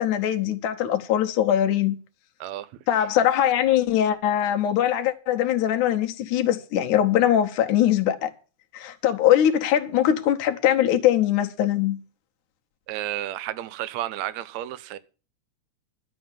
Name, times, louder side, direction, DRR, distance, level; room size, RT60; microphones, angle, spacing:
voice 1, 0.0-2.0 2.9-8.3 8.7-12.0, left 11 dB, 85° left, 2.5 m, -22 dB
voice 2, 12.9-15.0, right 13 dB, 75° right, 2.0 m, -32 dB
11.5 x 7.8 x 7.1 m
omnidirectional pair, 3.4 m